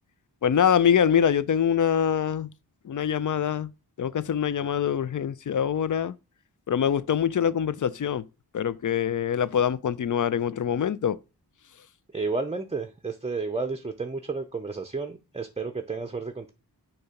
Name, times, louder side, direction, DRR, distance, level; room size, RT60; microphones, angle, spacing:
voice 1, 0.4-2.5 2.8-3.7 4.0-6.1 6.7-8.3 8.5-11.2, left 8 dB, 50° left, 0.4 m, -24 dB
voice 2, 12.1-16.5, right 4 dB, 15° right, 0.6 m, -31 dB
6.5 x 2.9 x 5.7 m
wide cardioid pair, 40°, 42 cm